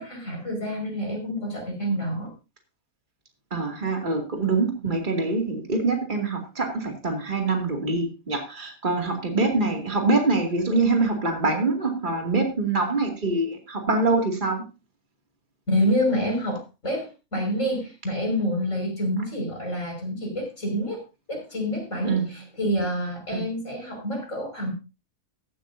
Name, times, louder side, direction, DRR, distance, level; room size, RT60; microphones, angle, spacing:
voice 1, 0.0-2.3 15.7-21.0 21.3-24.7, equal, 60° left, 1 dB, 5.9 m, -27 dB
voice 2, 3.5-14.6 22.0-22.3 23.3-23.4, right 3 dB, 35° right, 2 dB, 2.6 m, -24 dB
15.5 x 12.0 x 2.7 m, 0.29 s
omnidirectional pair, 1.5 m